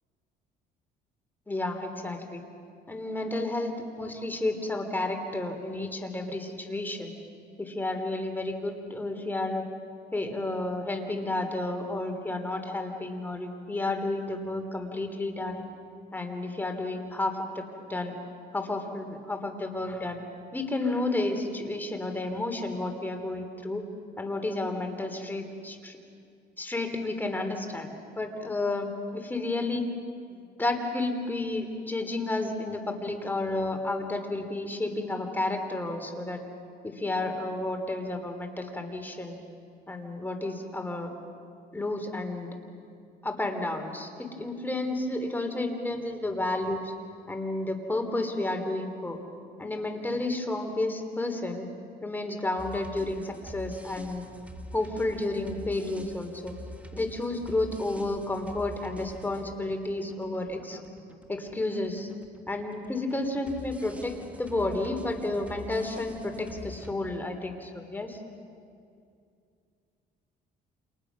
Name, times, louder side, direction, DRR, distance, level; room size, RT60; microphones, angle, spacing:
voice 1, 1.5-2.4 2.9-7.1 7.6-9.6 10.1-15.6 16.1-18.2 18.5-20.2 20.5-23.9 24.2-26.0 26.6-27.9 28.2-28.9 29.1-29.9 30.3-36.4 36.8-39.4 39.9-41.1 41.7-42.5 43.2-46.9 47.3-49.2 49.6-51.6 52.0-54.3 54.7-56.5 56.9-60.8 61.3-62.1 62.5-68.2, left 2 dB, 10° left, 4 dB, 3.3 m, -31 dB
sound 1, 52.6-66.9, equal, 10° right, 1.8 m, -46 dB
29.0 x 28.0 x 6.2 m, 2.4 s
cardioid pair, 110°, 17 cm